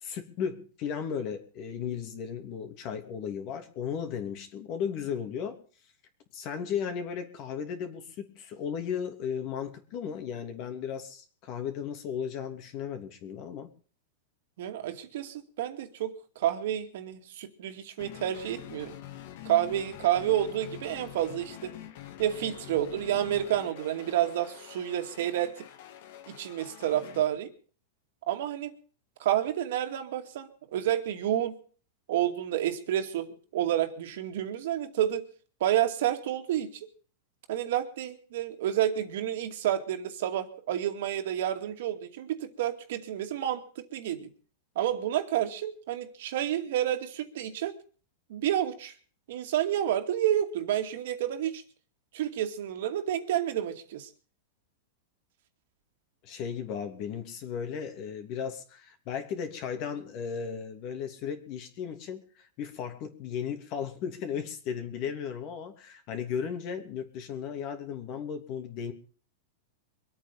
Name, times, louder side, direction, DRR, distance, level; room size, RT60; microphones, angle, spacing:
voice 1, 0.0-5.6 6.3-13.7 56.2-68.9, left 7 dB, 40° left, 7 dB, 3.0 m, -35 dB
voice 2, 14.6-18.9 19.4-21.7 22.2-25.6 26.3-27.5 28.3-28.7 29.2-31.6 32.1-35.3 35.6-36.7 37.5-44.3 44.8-47.7 48.3-48.9 49.3-51.6 52.1-54.1, right 11 dB, 65° right, 6 dB, 2.4 m, -29 dB
sound 1, 18.0-27.2, left 12 dB, 60° left, 1.9 m, -46 dB
24.0 x 8.8 x 5.5 m, 0.41 s
supercardioid pair, 150°, 0 cm